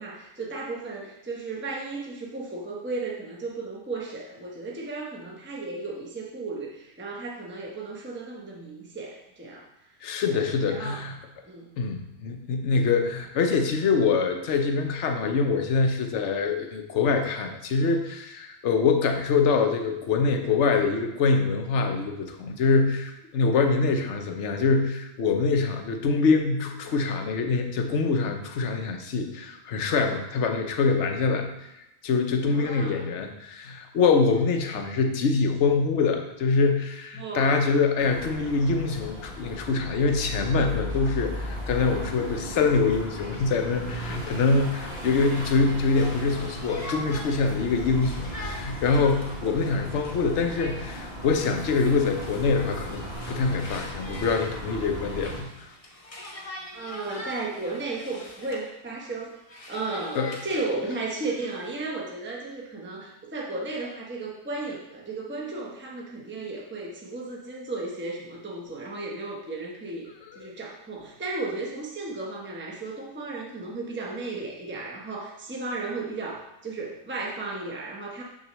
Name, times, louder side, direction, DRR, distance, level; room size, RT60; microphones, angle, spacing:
voice 1, 0.0-9.7 10.3-10.4 10.7-11.0 11.4-11.7 32.5-33.1 37.1-37.7 56.7-59.3 59.7-70.1 70.3-78.2, right 3 dB, 10° right, -2 dB, 0.8 m, -34 dB
voice 2, 10.0-11.1 11.8-31.5 32.0-53.0 53.3-55.7 60.1-60.4 70.3-70.5, left 4 dB, 75° left, 5 dB, 1.1 m, -24 dB
sound 1, 38.0-55.4, equal, 55° right, 1.8 m, -36 dB
Conversation, 45.9-58.7 59.1-61.7, left 1 dB, 30° left, 1.0 m, -43 dB
6.6 x 6.5 x 3.0 m, 0.88 s
omnidirectional pair, 1.2 m